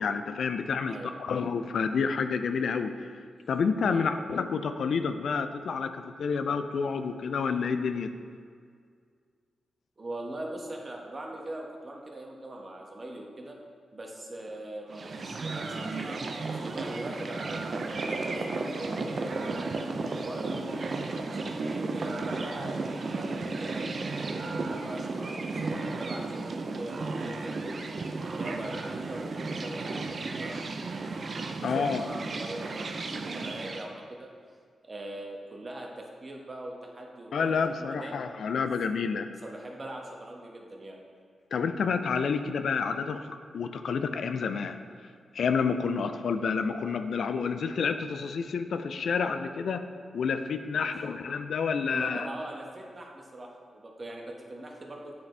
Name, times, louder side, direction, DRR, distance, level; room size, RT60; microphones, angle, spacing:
voice 1, 0.0-2.9 3.5-8.1 31.6-32.1 37.3-39.3 41.5-44.8 45.3-49.9 50.1-52.3, left 5 dB, 75° left, 9 dB, 0.3 m, -29 dB
voice 2, 10.0-13.6 13.9-17.7 18.0-19.9 20.2-27.8 28.3-30.6 31.5-34.3 34.8-38.2 39.4-41.0 50.7-51.0 51.9-55.1, right 1 dB, 45° right, 0 dB, 1.1 m, -41 dB
sound 1, 14.9-33.9, right 3 dB, 60° right, 0.5 m, -34 dB
8.5 x 4.2 x 3.3 m, 2.1 s
supercardioid pair, 45°, 0 cm